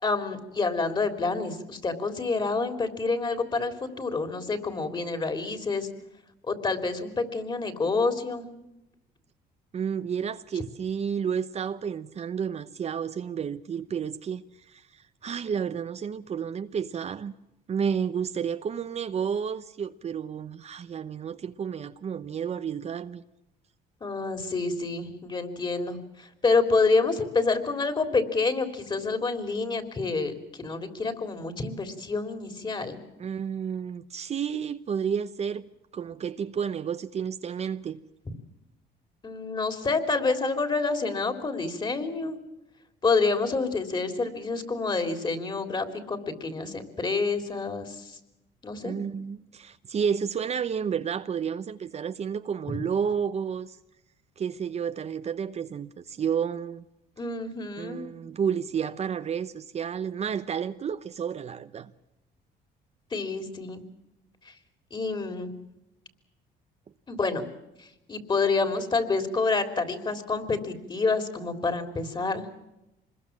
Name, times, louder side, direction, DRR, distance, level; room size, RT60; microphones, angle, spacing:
voice 1, 0.0-5.9 6.5-8.5 24.0-33.0 39.2-42.4 43.0-48.2 48.6-49.0 57.2-58.0 63.1-63.8 64.9-65.5 67.1-67.5 67.8-72.4, left 4 dB, 25° left, 3.5 m, -28 dB
voice 2, 9.7-17.3 17.7-23.2 33.2-35.7 35.9-38.0 48.8-53.8 54.4-56.8 57.8-61.9, right 7 dB, 40° right, 0.9 m, -31 dB
25.5 x 21.5 x 7.5 m
cardioid pair, 110°, 17 cm